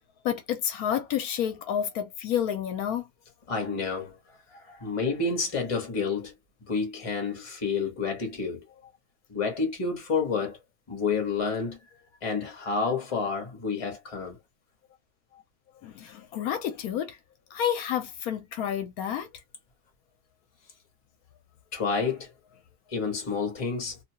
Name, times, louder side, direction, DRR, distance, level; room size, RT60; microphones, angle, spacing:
voice 1, 0.2-3.1 15.8-17.2 17.5-19.3, left 9 dB, 75° left, 1.0 m, -29 dB
voice 2, 3.5-4.2 4.5-6.3 6.6-8.6 9.3-10.6 10.9-11.8 12.2-14.4 21.7-22.3 22.9-24.0, left 4 dB, 25° left, 0.9 m, -29 dB
2.7 x 2.2 x 2.7 m
omnidirectional pair, 1.6 m